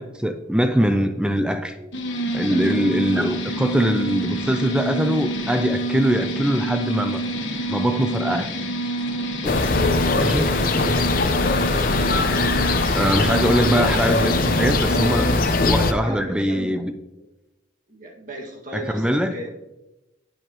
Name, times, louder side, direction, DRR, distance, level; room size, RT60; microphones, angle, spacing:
voice 1, 0.0-1.8 2.3-7.2 7.7-8.5 9.4-9.6 10.2-10.5 12.9-15.3 15.7-16.9 18.7-19.4, equal, 5° right, 8 dB, 0.4 m, -22 dB
sound 1, 1.9-15.6, right 1 dB, 80° left, 1.5 m, -27 dB
voice 2, 2.5-2.8 10.5-11.1 15.2-15.4 15.8-17.3 17.9-19.5, equal, 45° right, -1 dB, 1.9 m, -36 dB
sound 2, 9.4-15.9, left 3 dB, 50° left, 0.7 m, -21 dB
11.0 x 8.7 x 3.0 m, 0.97 s
head